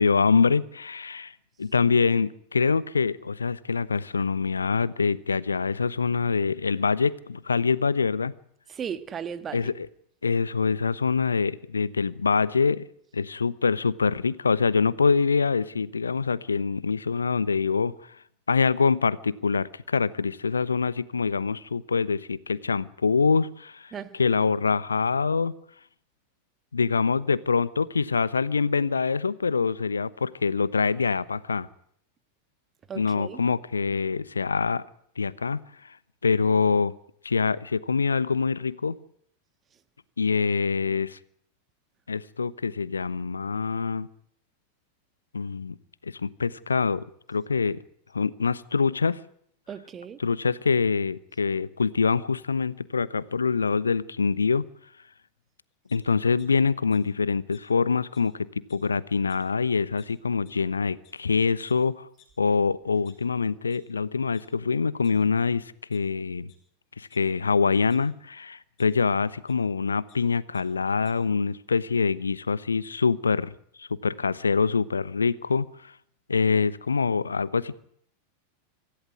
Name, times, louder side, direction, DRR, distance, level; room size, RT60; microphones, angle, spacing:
voice 1, 0.0-1.3 1.6-8.3 9.5-9.9 10.2-12.8 13.1-17.9 18.5-25.5 26.7-31.7 32.9-34.8 35.2-35.6 36.2-36.9 37.2-39.0 40.2-41.2 42.1-44.1 45.3-45.8 46.0-47.8 48.1-49.2 50.2-54.6 55.9-58.3 58.7-62.1 62.4-66.5 67.0-73.5 73.8-75.9 76.3-77.8, left 5 dB, 75° left, 1.0 m, -25 dB
voice 2, 8.7-9.7 23.9-24.2 32.9-33.4 49.7-50.2, right 7 dB, 25° right, 1.7 m, -36 dB
sound 1, 55.9-56.5 56.9-57.0 57.5-57.6 58.1-58.2 58.5-58.9 59.3-59.4 60.0-60.1 60.5-60.6 61.0-61.1 61.7-61.8 62.2-62.3 62.8-63.8 64.3-64.4 64.8-65.5 65.9-66.0 66.4-66.6 67.1-68.0 68.8-68.9 69.5-69.6 69.8-70.2 70.5-70.6 70.9-71.1, left 12 dB, 40° left, 6.7 m, -58 dB
25.5 x 15.0 x 9.7 m
figure-of-eight pair, 90°, 0 cm